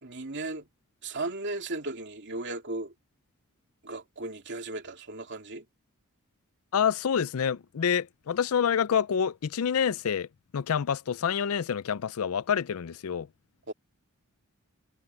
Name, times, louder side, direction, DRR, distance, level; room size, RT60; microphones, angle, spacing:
voice 1, 0.0-0.7 1.0-2.9 3.8-5.6 13.7-13.8, right 2 dB, 55° right, 2.8 m, -36 dB
voice 2, 6.7-10.3 10.5-13.3, left 7 dB, 70° left, 0.4 m, -27 dB
head